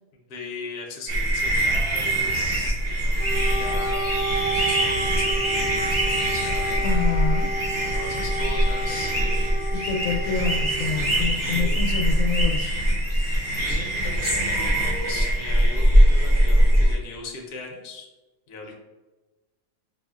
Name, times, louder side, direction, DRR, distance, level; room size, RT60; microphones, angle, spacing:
voice 1, 0.3-4.1 4.5-6.8 7.9-9.8 11.3-11.9 13.5-18.1 18.5-18.8, left 3 dB, 55° left, 0 dB, 0.8 m, -38 dB
sound 1, 1.1-17.0, right 1 dB, 20° right, 1.1 m, -22 dB
Wind instrument woodwind instrument, 3.2-11.2, right 1 dB, 80° right, 1.5 m, -31 dB
voice 2, 6.8-7.5 9.7-12.8, left 5 dB, 80° left, 2 dB, 1.1 m, -27 dB
5.2 x 2.4 x 2.4 m, 1.2 s
omnidirectional pair, 1.5 m